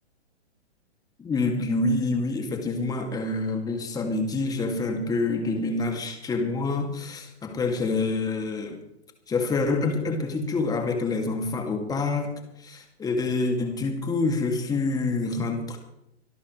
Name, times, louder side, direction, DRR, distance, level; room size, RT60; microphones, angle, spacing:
voice 1, 1.2-8.8 9.3-15.8, left 3 dB, 10° left, 4 dB, 2.3 m, -27 dB
26.0 x 12.5 x 3.2 m, 0.82 s
figure-of-eight pair, 125°, 34 cm